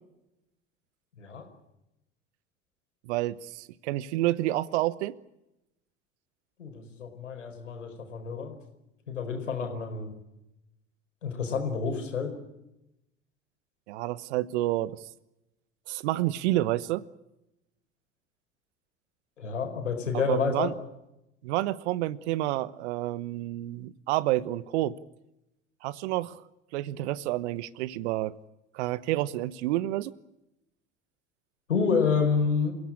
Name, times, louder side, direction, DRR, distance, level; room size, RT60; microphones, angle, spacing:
voice 1, 3.1-5.2 9.7-9.8 13.9-15.0 15.9-17.0 20.3-20.7 21.4-25.0 25.8-26.4 26.7-28.4 28.7-30.1, right 16 dB, 65° right, 19 dB, 1.1 m, -29 dB
voice 2, 6.6-8.6 9.1-10.1 11.2-12.3 19.4-20.7 31.7-32.7, left 5 dB, 85° left, 5 dB, 4.8 m, -29 dB
28.5 x 16.0 x 8.6 m, 0.90 s
hypercardioid pair, 70°, 36 cm